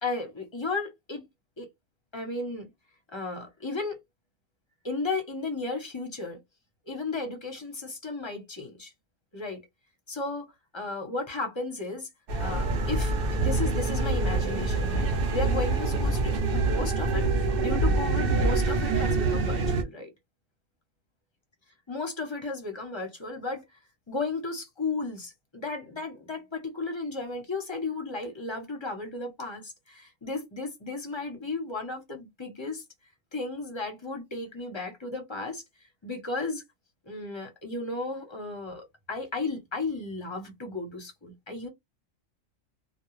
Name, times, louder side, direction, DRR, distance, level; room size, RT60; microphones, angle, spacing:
voice 1, 0.0-1.3 1.6-1.7 2.1-2.7 3.1-4.0 4.8-6.4 6.9-8.9 9.3-9.6 10.1-12.1 12.4-20.1 21.9-23.6 24.1-32.8 33.3-35.6 36.0-36.6 37.1-41.7, left 3 dB, 25° left, 0.7 m, -34 dB
sound 1, 12.3-19.8, right 3 dB, 55° right, 0.7 m, -26 dB
2.3 x 2.2 x 3.0 m
omnidirectional pair, 1.4 m